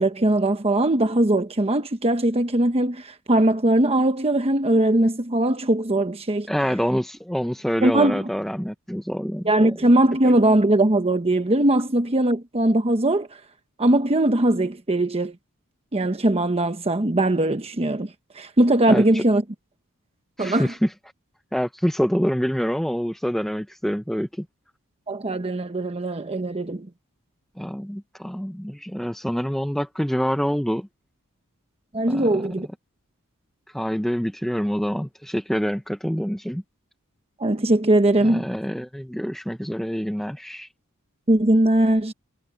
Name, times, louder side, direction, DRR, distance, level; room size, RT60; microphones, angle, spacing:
voice 1, 0.0-6.5 7.8-8.3 9.4-13.3 13.8-15.3 15.9-18.1 18.4-19.4 20.4-20.7 25.1-26.9 31.9-32.7 37.4-38.4 41.3-42.1, right 1 dB, 30° right, 1.0 m, -20 dB
voice 2, 6.5-9.7 18.9-19.2 20.4-20.9 21.5-24.5 27.6-30.9 32.1-32.3 33.7-36.6 38.2-40.7, equal, ahead, 0.7 m, -26 dB
head